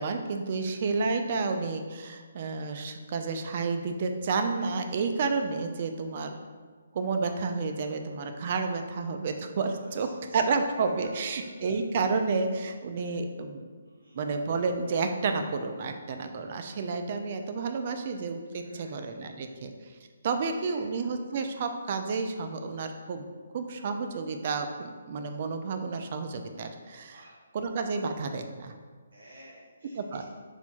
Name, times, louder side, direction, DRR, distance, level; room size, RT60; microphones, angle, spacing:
voice 1, 0.0-6.4 6.9-13.6 14.1-19.7 20.2-27.3 27.5-28.8 29.9-30.2, right 4 dB, 35° right, 6 dB, 0.3 m, -31 dB
voice 2, 9.8-10.4 13.8-14.2 18.6-19.0 20.4-20.9 27.1-27.4 29.1-30.2, right 1 dB, 90° right, -6 dB, 1.1 m, -54 dB
4.4 x 2.2 x 4.2 m, 1.5 s
hypercardioid pair, 165°, 0 cm